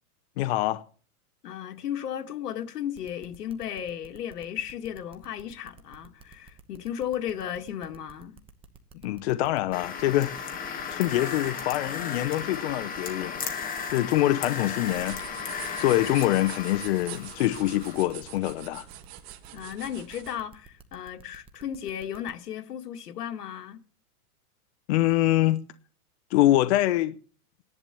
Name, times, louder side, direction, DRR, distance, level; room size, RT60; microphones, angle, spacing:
voice 1, 0.4-0.8 9.0-10.4 10.9-13.4 13.9-15.2 15.8-18.8 24.9-25.6 26.3-27.2, left 15 dB, 45° left, 0.8 m, -24 dB
voice 2, 1.4-8.4 19.5-23.8, left 10 dB, 85° left, 1.9 m, -35 dB
sound 1, 2.9-22.3, right 6 dB, 10° right, 0.9 m, -52 dB
sound 2, 9.7-18.0, left 6 dB, 20° left, 1.8 m, -35 dB
sound 3, 14.8-20.4, right 12 dB, 45° right, 1.6 m, -44 dB
15.0 x 11.0 x 6.9 m
supercardioid pair, 155°, 45 cm